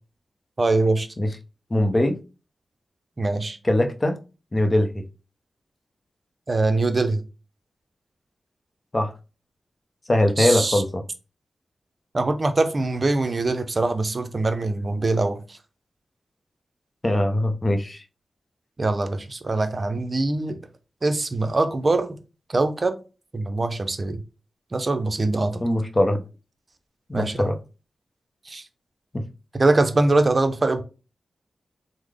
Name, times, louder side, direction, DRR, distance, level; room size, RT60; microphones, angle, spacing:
voice 1, 0.6-1.1 3.2-3.6 6.5-7.2 10.4-10.8 12.1-15.6 18.8-20.6 21.0-22.2 22.5-22.9 23.3-24.2 24.7-25.6 27.1-27.5 28.5-28.6 29.5-30.8, right 2 dB, 45° right, 0.6 m, -23 dB
voice 2, 1.7-2.2 3.6-4.2 4.5-5.0 8.9-9.1 10.1-11.0 17.0-18.0 25.6-26.2 27.1-27.5 29.1-29.2, left 1 dB, 30° left, 0.6 m, -21 dB
3.2 x 2.0 x 3.6 m
cardioid pair, 50°, 0 cm